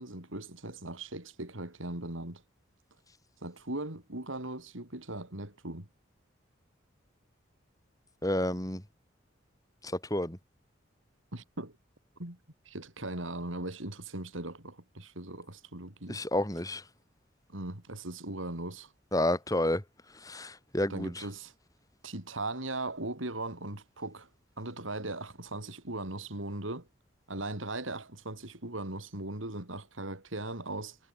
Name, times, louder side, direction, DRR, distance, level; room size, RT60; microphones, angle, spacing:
voice 1, 0.0-2.4 3.4-5.9 11.3-11.7 12.2-12.4 12.7-16.2 17.5-18.9 20.9-21.5 22.0-24.3 24.6-26.9 27.3-31.0, right 2 dB, 80° right, 4.4 m, -39 dB
voice 2, 8.2-8.8 9.8-10.4 16.1-16.8 19.1-19.8 20.2-21.2, left 1 dB, 20° left, 3.3 m, -30 dB
head